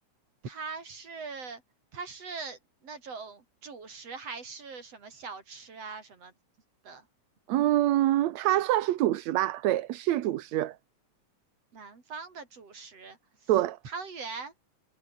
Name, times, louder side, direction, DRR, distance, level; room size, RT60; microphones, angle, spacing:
voice 1, 0.4-1.6 1.9-6.3 6.8-7.0 11.7-13.2 13.4-13.5 13.8-14.5, right 4 dB, 50° right, 5.4 m, -41 dB
voice 2, 7.5-10.8 13.5-13.8, right 14 dB, 70° right, 2.2 m, -25 dB
omnidirectional pair, 3.5 m